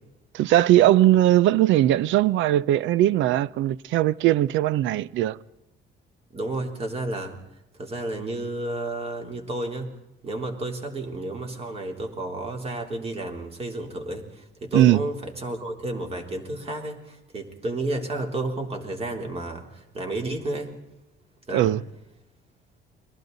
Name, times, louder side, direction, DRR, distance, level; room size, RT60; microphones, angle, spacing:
voice 1, 0.3-5.4 14.7-15.0 21.5-21.8, right 13 dB, 80° right, 0.6 m, -19 dB
voice 2, 6.3-7.3 7.8-9.9 10.2-20.8 21.5-21.8, right 2 dB, 30° right, 3.4 m, -31 dB
30.0 x 22.0 x 4.0 m
cardioid pair, 130°, 20 cm